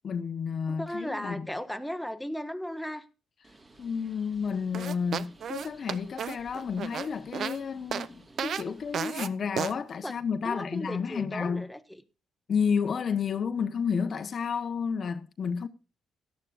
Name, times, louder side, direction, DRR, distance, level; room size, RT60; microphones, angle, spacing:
voice 1, 0.0-1.5 3.8-11.7 12.5-15.7, left 6 dB, 50° left, 1.0 m, -31 dB
voice 2, 0.7-3.0 8.6-8.7 10.0-10.1 10.4-12.0, equal, ahead, 1.3 m, -36 dB
Bird, 3.4-9.0, right 2 dB, 35° right, 3.2 m, -56 dB
sound 1, 4.7-7.6 7.9-8.1 8.4-8.6 8.9-9.3 9.6-9.7, right 8 dB, 60° right, 0.7 m, -33 dB
17.0 x 11.5 x 2.5 m
cardioid pair, 90°, 0 cm